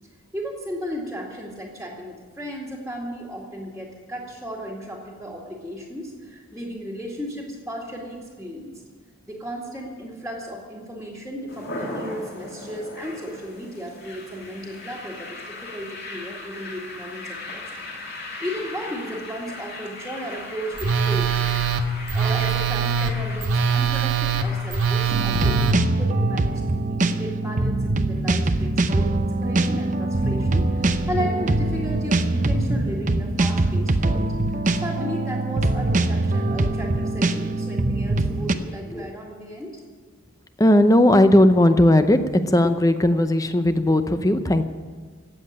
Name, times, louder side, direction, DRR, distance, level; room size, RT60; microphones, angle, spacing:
voice 1, 0.3-8.8 9.3-17.6 18.4-21.3 21.9-39.8, equal, ahead, -3 dB, 2.2 m, -34 dB
sound 1, 11.5-25.1, left 2 dB, 50° left, 2.9 m, -38 dB
Telephone, 20.8-25.7, right 6 dB, 70° right, 0.9 m, -22 dB
sound 2, 25.1-38.5, right 2 dB, 35° right, 0.7 m, -23 dB
voice 2, 40.6-42.2 42.5-44.6, left 1 dB, 15° left, 9 dB, 0.6 m, -17 dB
17.0 x 7.6 x 9.9 m, 1.5 s
head